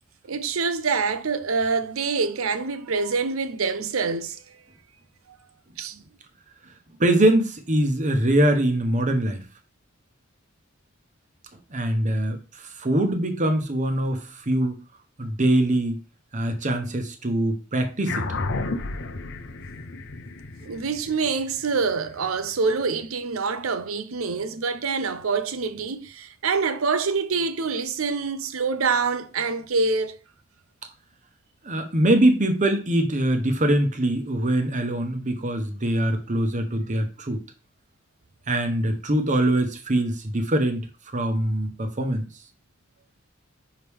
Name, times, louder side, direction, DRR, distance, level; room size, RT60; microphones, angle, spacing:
voice 1, 0.3-4.6 5.3-5.4 5.8-6.0 20.6-30.2, right 4 dB, 85° right, 0.7 m, -26 dB
voice 2, 7.0-9.4 11.7-14.8 15.2-16.0 16.3-18.3 31.6-37.4 38.5-40.9 41.1-42.3, right 1 dB, 35° right, 1.1 m, -23 dB
sound 1, 18.1-22.8, left 3 dB, 60° left, 0.7 m, -32 dB
5.8 x 4.8 x 3.5 m
head